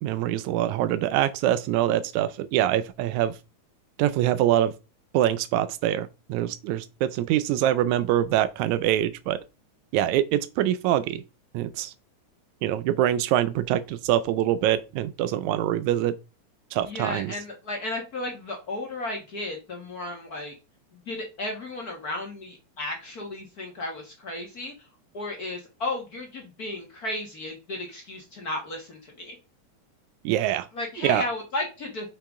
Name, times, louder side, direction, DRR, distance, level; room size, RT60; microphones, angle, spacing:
voice 1, 0.0-3.3 4.0-4.7 5.1-9.4 9.9-11.2 11.5-11.9 12.6-16.1 16.7-17.3 30.3-30.7 31.0-31.2, right 12 dB, 90° right, 1.6 m, -24 dB
voice 2, 16.8-20.5 21.1-24.7 25.1-29.3 30.7-32.1, left 2 dB, 50° left, 1.1 m, -34 dB
6.6 x 5.9 x 3.6 m
omnidirectional pair, 3.9 m